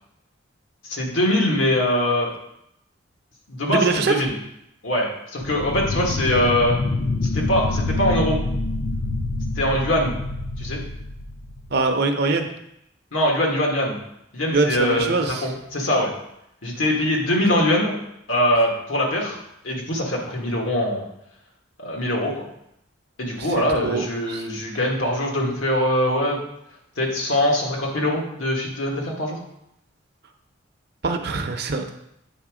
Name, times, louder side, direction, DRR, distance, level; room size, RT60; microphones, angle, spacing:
voice 1, 0.8-2.3 3.5-4.4 4.8-6.8 7.2-8.4 9.6-10.2 10.6-10.8 13.1-14.0 14.3-16.1 16.6-18.0 18.3-19.4 19.6-21.1 21.8-22.5 23.2-26.4 27.0-29.4, left 1 dB, 90° left, 0 dB, 1.7 m, -22 dB
voice 2, 3.7-4.1 11.7-12.5 14.5-15.5 23.4-24.4 31.0-31.9, right 3 dB, 55° right, 5 dB, 0.7 m, -23 dB
sound 1, 5.4-11.9, left 2 dB, 35° left, 0.4 m, -26 dB
8.3 x 3.5 x 4.9 m, 0.80 s
head